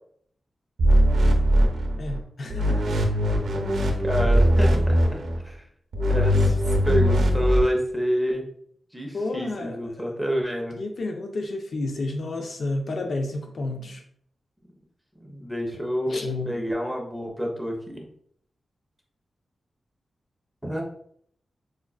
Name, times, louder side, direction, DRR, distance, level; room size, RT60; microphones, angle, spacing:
sound 1, 0.8-2.2 2.5-5.4 5.9-7.6, equal, 85° right, 0.5 m, -20 dB
voice 1, 2.0-3.2 9.1-10.1 10.8-14.0 16.1-16.6, left 2 dB, 60° left, 3 dB, 0.4 m, -31 dB
voice 2, 4.0-4.9 5.4-5.6 6.1-6.6 6.8-8.4 8.9-10.8 15.2-16.2 16.5-18.0 20.6-20.8, equal, ahead, 0 dB, 0.6 m, -27 dB
4.7 x 2.3 x 2.3 m, 0.65 s
wide cardioid pair, 160°, 0 cm